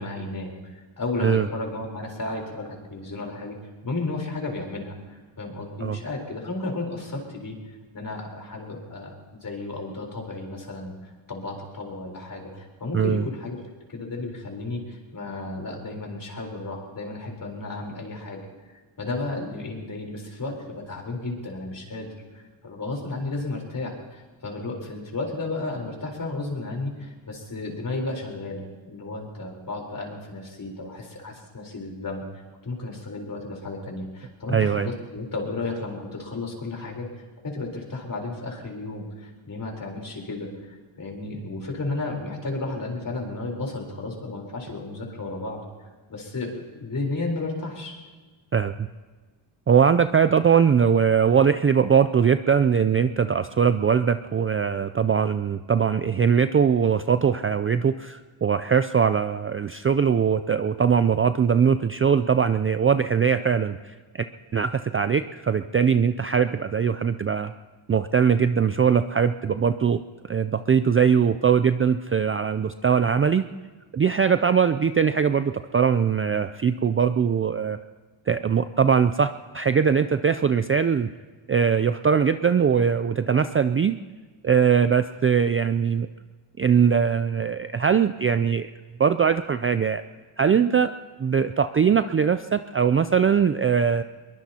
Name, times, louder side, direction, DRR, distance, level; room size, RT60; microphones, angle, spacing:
voice 1, 0.0-3.6 3.8-7.6 7.9-9.1 9.4-13.6 13.9-18.4 19.0-32.2 32.6-37.1 37.4-45.6 46.1-48.0, left 2 dB, 40° left, 1 dB, 4.0 m, -33 dB
voice 2, 34.5-34.9 48.5-48.9 49.7-64.3 64.5-67.5 67.9-70.0 70.3-73.4 73.9-77.8 78.3-81.1 81.5-84.0 84.4-86.1 86.6-88.7 89.0-90.0 90.4-90.9 91.2-94.0, right 7 dB, 30° right, 11 dB, 0.4 m, -21 dB
22.5 x 21.0 x 2.9 m, 1.3 s
cardioid pair, 90°, 50 cm